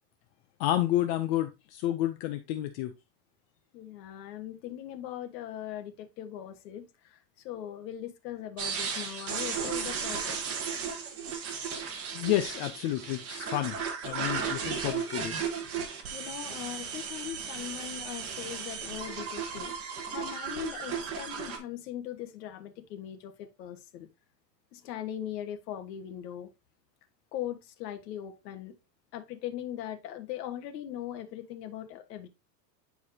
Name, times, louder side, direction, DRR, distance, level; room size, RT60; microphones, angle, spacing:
voice 1, 0.6-2.9 12.1-13.8 14.0-15.5, left 13 dB, 40° left, 0.6 m, -30 dB
voice 2, 3.7-10.4 14.2-14.8 16.1-19.7 20.1-24.1 24.7-26.5 27.3-28.7 29.1-32.3, left 11 dB, 75° left, 1.5 m, -40 dB
sound 1, 8.6-21.6, right 6 dB, 30° right, 1.5 m, -35 dB
9.7 x 4.7 x 2.8 m
supercardioid pair, 160°, 49 cm